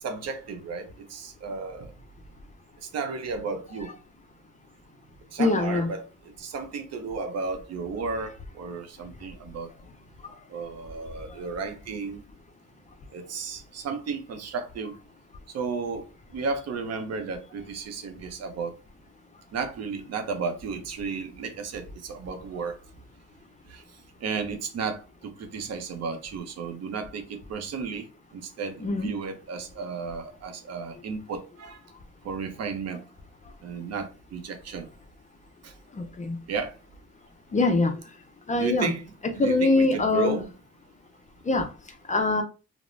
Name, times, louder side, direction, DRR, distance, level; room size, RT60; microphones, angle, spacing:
voice 1, 0.0-1.9 2.8-3.9 5.3-9.7 10.5-12.2 13.1-15.0 15.5-18.7 19.5-22.8 23.7-23.8 24.2-31.8 32.2-33.0 33.6-34.9 35.6-35.7 36.5-36.8 38.6-40.5, right 5 dB, 55° right, 0.6 m, -33 dB
voice 2, 5.4-5.9 28.8-29.1 35.9-36.4 37.5-37.9 38.5-38.9 39.4-40.4 41.5-41.7 42.1-42.4, left 3 dB, 25° left, 0.5 m, -23 dB
2.3 x 2.0 x 3.1 m
cardioid pair, 90°, 30 cm